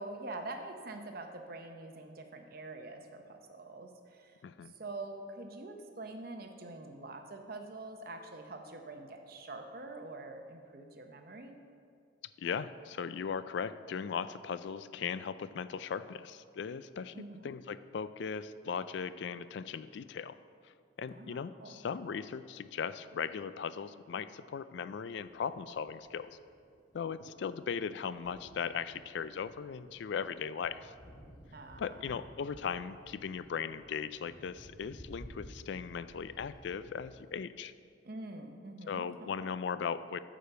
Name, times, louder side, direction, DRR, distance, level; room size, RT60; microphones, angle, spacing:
voice 1, 0.0-4.4 4.7-11.6 17.1-17.5 21.1-21.7 31.5-32.5 38.0-39.5, right 2 dB, 50° right, 5 dB, 0.8 m, -45 dB
voice 2, 4.4-4.7 12.4-17.1 17.4-20.4 21.0-26.3 26.9-30.9 31.8-37.7 38.9-40.2, left 6 dB, 60° left, 14 dB, 0.3 m, -38 dB
Thunder, 24.7-37.3, equal, 20° left, 2.1 m, -56 dB
8.9 x 5.0 x 6.8 m, 2.3 s
head